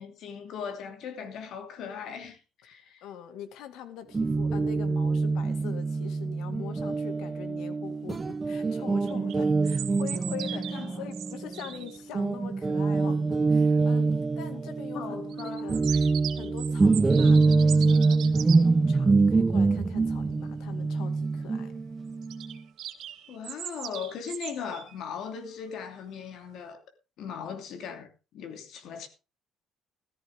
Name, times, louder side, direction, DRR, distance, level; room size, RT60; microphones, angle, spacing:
voice 1, 0.0-3.1 10.7-11.0 14.9-16.0 23.3-26.8 27.2-29.1, left 6 dB, 65° left, 2.8 m, -39 dB
voice 2, 3.0-16.0 16.4-21.7, left 9 dB, 85° left, 2.1 m, -43 dB
Guitar, 4.1-11.8 12.1-22.6, right 3 dB, 20° right, 0.6 m, -25 dB
sound 1, 9.1-12.0 15.3-18.6 22.2-25.0, right 11 dB, 65° right, 1.7 m, -39 dB
14.5 x 13.5 x 3.7 m
cardioid pair, 150°, 0 cm